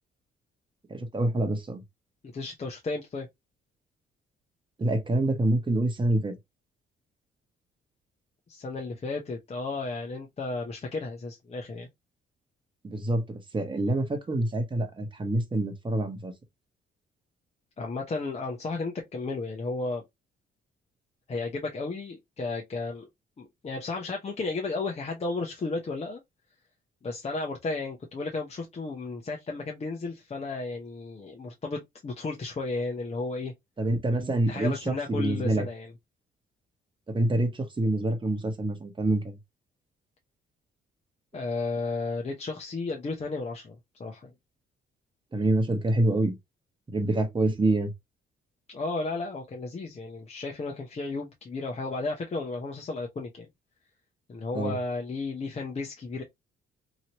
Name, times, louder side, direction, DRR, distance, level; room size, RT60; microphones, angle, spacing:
voice 1, 0.9-1.8 4.8-6.3 12.8-16.3 33.8-35.6 37.1-39.3 45.3-46.4 46.9-47.9 54.5-54.7, right 1 dB, 25° right, 1.1 m, -26 dB
voice 2, 2.2-3.3 8.5-11.9 17.8-20.0 21.3-23.1 23.4-26.2 27.0-33.5 34.5-35.9 41.3-44.3 48.7-53.5 54.3-56.2, left 3 dB, 30° left, 0.8 m, -33 dB
3.0 x 2.8 x 2.9 m
cardioid pair, 90°, 20 cm